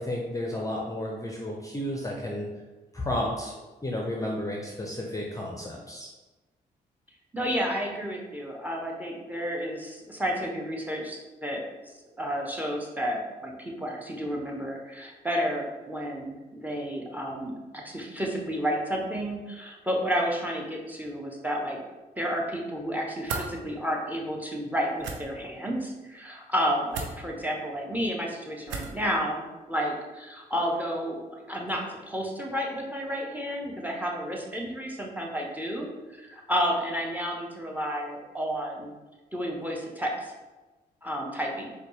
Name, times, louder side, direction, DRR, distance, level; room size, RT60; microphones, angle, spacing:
voice 1, 0.0-2.5 2.9-3.5 3.8-6.1, left 1 dB, 15° left, -1 dB, 0.7 m, -32 dB
voice 2, 7.3-11.6 12.2-21.8 22.2-38.9 39.3-40.3 41.0-41.7, equal, 10° right, 0 dB, 0.9 m, -31 dB
sound 1, 23.3-23.5 25.0-25.2 26.9-27.1 28.7-29.0, right 5 dB, 75° right, 0.5 m, -33 dB
4.1 x 2.3 x 3.1 m, 1.2 s
hypercardioid pair, 40°, 20 cm